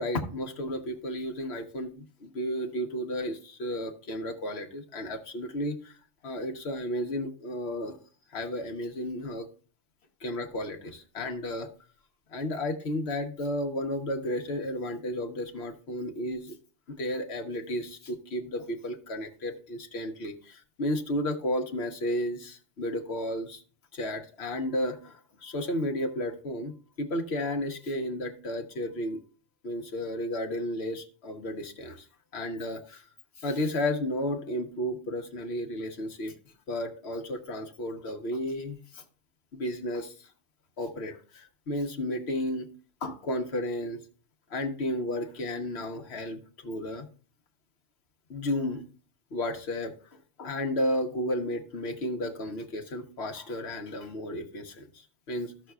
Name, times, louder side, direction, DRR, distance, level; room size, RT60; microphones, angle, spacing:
voice 1, 0.0-6.0 6.2-8.0 8.3-9.5 10.2-11.7 12.3-16.5 16.9-23.6 23.9-29.2 29.6-32.1 32.3-33.0 33.4-36.4 36.7-39.0 39.5-40.1 40.8-42.7 43.0-44.0 44.5-47.1 48.3-48.8 49.3-49.9 50.4-55.5, left 1 dB, 60° left, 5 dB, 1.3 m, -33 dB
14.0 x 6.4 x 2.3 m, 0.41 s
omnidirectional pair, 1.3 m